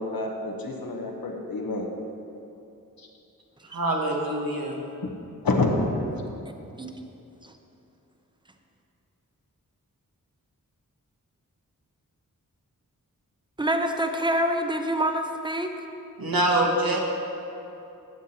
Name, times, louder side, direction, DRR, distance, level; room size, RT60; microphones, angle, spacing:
voice 1, 0.0-1.9 3.0-3.1 5.0-5.1 5.4-6.2, left 2 dB, 85° left, 1.0 m, -27 dB
voice 2, 3.7-4.8 16.2-17.0, right 1 dB, 80° right, 1.3 m, -24 dB
voice 3, 13.6-15.7, right 1 dB, 15° right, 0.7 m, -26 dB
11.5 x 7.8 x 2.8 m
wide cardioid pair, 50°, 35 cm